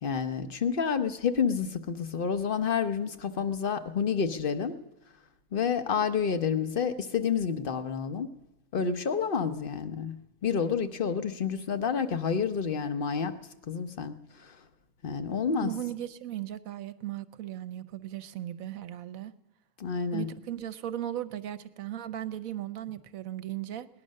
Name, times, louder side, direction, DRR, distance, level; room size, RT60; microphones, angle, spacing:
voice 1, 0.0-4.8 5.5-8.3 8.7-10.1 10.4-13.4 13.7-14.6 15.0-15.7 19.8-20.3, left 6 dB, 45° left, 10 dB, 0.9 m, -29 dB
voice 2, 15.6-19.3 20.1-23.9, right 12 dB, 70° right, 13 dB, 1.2 m, -37 dB
18.5 x 11.0 x 6.5 m, 0.99 s
omnidirectional pair, 1.5 m